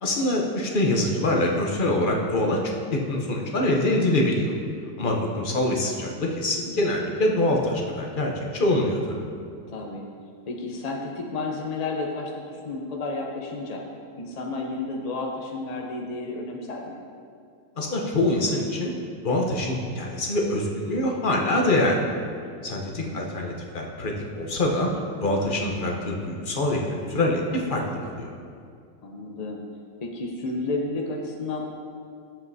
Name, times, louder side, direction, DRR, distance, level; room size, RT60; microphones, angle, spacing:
voice 1, 0.0-4.5 5.0-9.2 17.8-18.9 19.2-22.0 22.6-24.9 25.2-28.3, left 1 dB, 40° left, 0 dB, 0.7 m, -24 dB
voice 2, 5.1-5.4 9.7-10.1 10.5-13.8 14.1-17.0 22.8-23.2 29.0-29.6 30.0-31.6, left 3 dB, 60° left, -1 dB, 0.4 m, -32 dB
11.5 x 7.6 x 2.7 m, 2.3 s
omnidirectional pair, 1.8 m